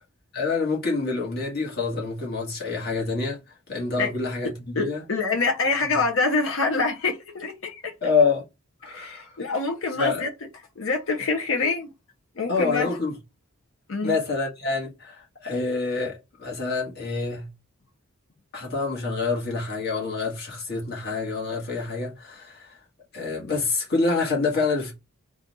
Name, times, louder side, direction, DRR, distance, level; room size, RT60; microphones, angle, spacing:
voice 1, 0.3-3.4 3.7-5.0 5.9-6.0 8.0-8.4 8.8-9.4 10.0-10.2 12.5-13.2 14.0-17.5 18.5-22.8 23.1-24.9, left 4 dB, 50° left, 1.5 m, -27 dB
voice 2, 4.8-7.9 8.9-10.3 10.8-11.9 12.4-12.9 13.9-14.2, left 3 dB, 70° left, 0.7 m, -25 dB
4.0 x 2.5 x 3.9 m
head